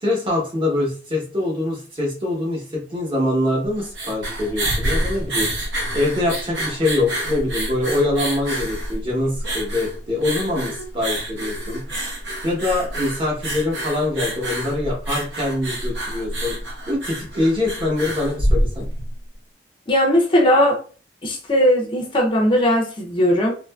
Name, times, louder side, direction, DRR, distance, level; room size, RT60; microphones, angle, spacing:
voice 1, 0.0-5.5 5.9-11.8 12.4-16.6 16.9-18.9, left 2 dB, 30° right, -2 dB, 0.9 m, -24 dB
sound 1, 3.7-19.1, right 1 dB, 75° right, 0.8 m, -27 dB
voice 2, 19.9-20.8 21.2-23.5, equal, 30° left, -1 dB, 0.5 m, -18 dB
2.7 x 2.5 x 2.2 m, 0.40 s
head